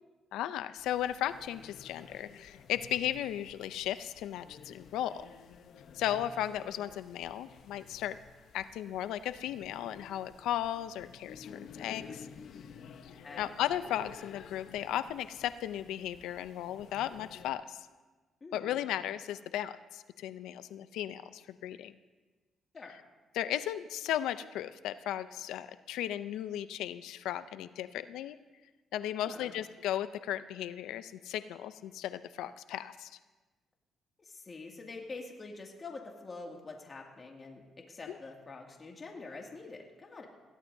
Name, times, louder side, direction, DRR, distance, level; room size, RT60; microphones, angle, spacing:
voice 1, 0.3-5.2 5.9-8.2 8.5-11.5 11.8-12.3 13.4-17.9 18.5-21.9 23.3-28.4 28.9-33.2, left 11 dB, 90° left, 13 dB, 0.4 m, -36 dB
sound 1, 0.8-17.5, left 6 dB, 70° left, 0.8 m, -52 dB
voice 2, 18.4-18.9 22.7-23.0 29.2-29.6 34.2-40.3, left 3 dB, 35° left, 0 dB, 2.2 m, -46 dB
20.5 x 16.0 x 2.7 m, 1.2 s
cardioid pair, 90°, 0 cm